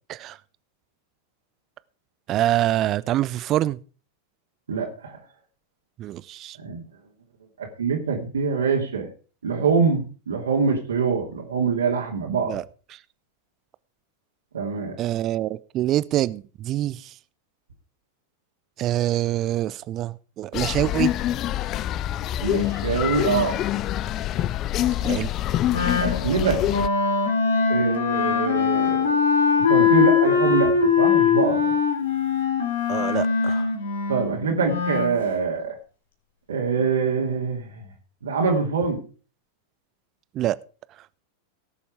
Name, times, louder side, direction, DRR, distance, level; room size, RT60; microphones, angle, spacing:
voice 1, 2.3-3.8 6.0-6.6 12.5-12.6 15.0-17.1 18.8-21.1 25.0-25.3 32.9-33.7 40.3-40.6, right 13 dB, 35° right, 0.5 m, -25 dB
voice 2, 4.7-5.2 6.6-6.8 7.6-9.1 9.4-12.6 14.5-14.9 22.4-23.6 26.0-26.6 27.7-29.2 29.6-31.7 34.1-35.8 36.5-37.8 38.2-39.0, right 5 dB, 70° right, 2.7 m, -24 dB
sound 1, 20.5-26.9, left 13 dB, 35° left, 0.5 m, -25 dB
Wind instrument woodwind instrument, 25.7-35.2, left 6 dB, 65° left, 2.6 m, -22 dB
18.0 x 7.1 x 4.9 m
figure-of-eight pair, 90°, 0 cm